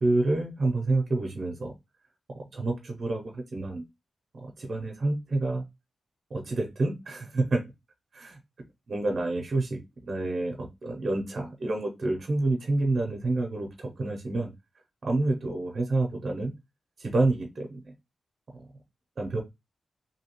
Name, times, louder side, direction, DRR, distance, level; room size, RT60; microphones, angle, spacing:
voice 1, 0.0-1.7 2.5-3.8 4.3-5.6 6.3-7.6 8.1-8.4 8.9-9.8 10.0-14.5 15.0-16.5 17.0-17.8 18.5-18.7 19.2-19.4, right 2 dB, 50° right, 2 dB, 0.6 m, -28 dB
2.7 x 2.3 x 2.9 m, 0.22 s
wide cardioid pair, 105°, 0 cm